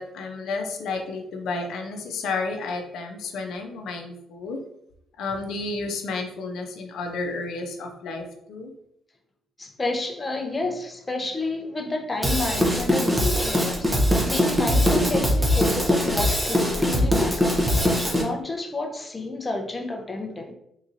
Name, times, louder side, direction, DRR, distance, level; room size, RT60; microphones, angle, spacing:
voice 1, 0.0-4.6 5.2-8.7, left 3 dB, 80° left, 3 dB, 0.6 m, -31 dB
voice 2, 9.6-14.0 14.3-17.7 18.2-20.5, left 2 dB, 20° left, 3 dB, 0.6 m, -30 dB
Drum kit / Drum, 12.2-18.2, equal, 15° right, 0.7 m, -22 dB
3.7 x 2.9 x 2.6 m, 0.76 s
cardioid pair, 90°, 0 cm